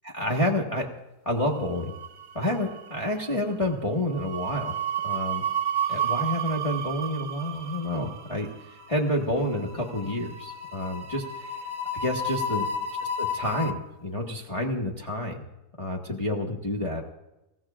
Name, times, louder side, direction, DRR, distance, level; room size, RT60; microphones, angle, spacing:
voice 1, 0.0-0.9 1.2-1.9 2.3-4.8 5.0-5.4 5.9-8.5 8.9-11.5 11.9-12.7 13.2-15.4 15.8-17.0, left 1 dB, 20° left, -2 dB, 1.4 m, -29 dB
sound 1, 1.7-2.4 2.7-3.0 4.2-13.7, right 3 dB, 50° right, 1.4 m, -31 dB
27.5 x 15.0 x 2.5 m, 0.93 s
omnidirectional pair, 1.8 m